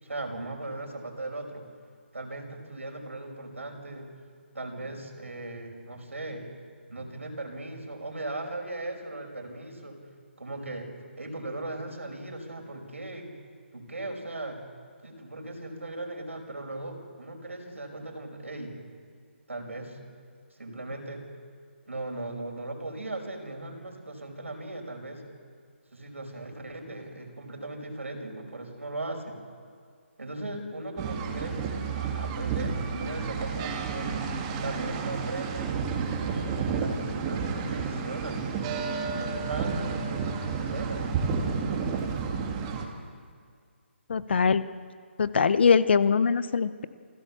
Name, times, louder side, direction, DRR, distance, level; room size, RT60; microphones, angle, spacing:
voice 1, 0.0-1.6 2.1-4.1 4.5-6.5 6.9-10.0 10.4-10.9 11.2-13.3 13.7-14.6 15.0-18.8 19.5-20.0 20.5-21.2 21.9-25.2 25.9-29.4 30.2-34.2 34.6-35.8 36.7-38.4 38.9-41.1, right 2 dB, 90° right, 2 dB, 5.3 m, -38 dB
sound 1, 31.0-42.9, right 5 dB, 20° right, 2.2 m, -31 dB
sound 2, 34.5-40.2 40.4-43.3, left 1 dB, 85° left, 7.8 m, -48 dB
voice 2, 44.1-44.6 45.2-46.8, left 5 dB, 55° left, 15 dB, 0.9 m, -22 dB
28.5 x 15.0 x 7.3 m, 2.1 s
figure-of-eight pair, 155°, 7 cm